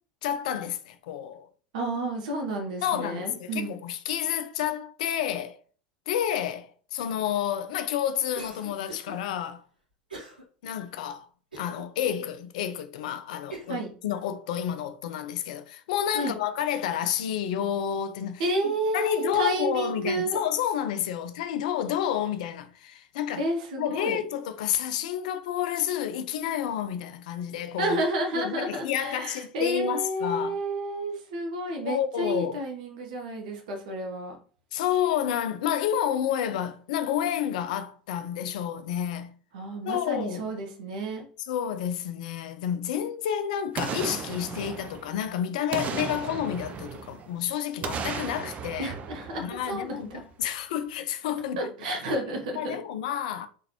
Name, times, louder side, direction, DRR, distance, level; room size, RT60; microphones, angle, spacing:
voice 1, 0.2-1.5 2.8-5.6 6.1-9.6 10.6-11.3 11.6-18.4 18.9-23.4 23.8-28.0 28.3-30.6 31.8-32.6 34.7-39.3 39.8-40.4 41.5-48.9 49.4-51.6 52.6-53.5, left 10 dB, 60° left, 0.5 m, -30 dB
voice 2, 1.7-3.7 13.7-13.9 16.1-16.3 18.4-20.4 23.4-24.2 27.8-34.4 39.5-41.3 48.8-50.2 51.6-52.8, right 1 dB, 60° right, 1.1 m, -31 dB
Cough, 8.3-9.2 10.1-10.4 10.9-11.0 11.5-12.2 12.8-12.9 13.5-13.8, right 3 dB, 80° right, 1.6 m, -42 dB
Boom, 43.8-45.3 45.7-47.4 47.8-50.1 50.4-50.5, right 6 dB, 30° right, 0.5 m, -35 dB
3.8 x 3.3 x 2.9 m
figure-of-eight pair, 80°, 5 cm